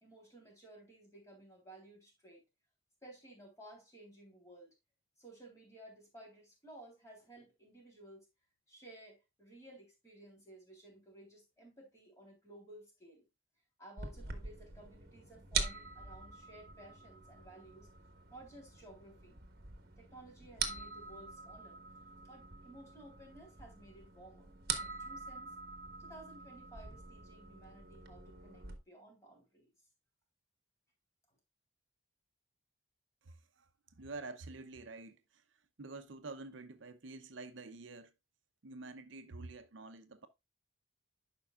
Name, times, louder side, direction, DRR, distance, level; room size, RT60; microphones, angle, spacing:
voice 1, 0.0-2.4 3.0-4.7 5.2-8.3 8.7-13.3 13.8-17.9 18.3-19.4 20.0-21.8 22.2-25.5 26.0-29.7, right 1 dB, 15° left, 3.5 m, -56 dB
sound 1, 14.0-28.7, right 5 dB, 50° right, 1.2 m, -44 dB
voice 2, 33.2-35.4 35.8-38.1 38.6-40.3, right 3 dB, 65° right, 0.7 m, -48 dB
11.5 x 5.2 x 2.4 m
head